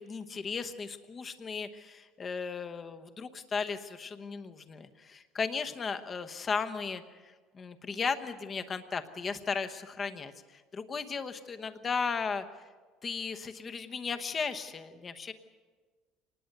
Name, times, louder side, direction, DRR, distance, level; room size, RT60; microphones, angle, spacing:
voice 1, 0.0-12.4 13.0-15.3, left 5 dB, 20° left, 8 dB, 1.0 m, -36 dB
25.5 x 19.5 x 6.7 m, 1.4 s
cardioid pair, 170°, 0 cm